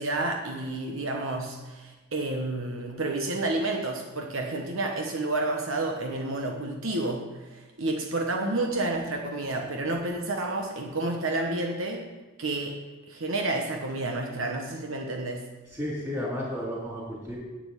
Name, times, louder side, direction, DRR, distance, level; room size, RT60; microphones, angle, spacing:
voice 1, 0.0-12.1 12.4-12.8 13.1-15.5, right 2 dB, 70° right, 2 dB, 1.2 m, -30 dB
voice 2, 15.7-17.4, left 1 dB, 15° right, -5 dB, 3.9 m, -32 dB
8.7 x 7.7 x 8.4 m, 1.2 s
head